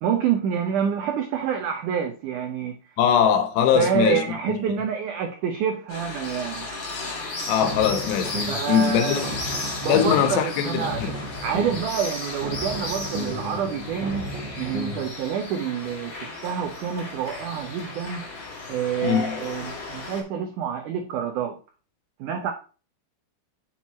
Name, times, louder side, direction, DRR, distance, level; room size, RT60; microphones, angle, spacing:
voice 1, 0.0-2.8 3.8-6.7 8.5-9.3 9.8-11.2 11.4-14.3 14.6-18.3 18.7-21.6 22.2-22.5, right 8 dB, 85° right, 1.7 m, -27 dB
voice 2, 3.0-4.6 7.5-9.3 9.8-11.1 19.0-19.4, left 8 dB, 85° left, 3.0 m, -22 dB
sound 1, 5.9-20.2, left 3 dB, 50° left, 1.6 m, -34 dB
sound 2, 7.5-8.7 9.1-10.3 10.7-11.9 12.3-15.1, equal, 45° right, 1.6 m, -34 dB
6.2 x 5.9 x 4.1 m
omnidirectional pair, 4.7 m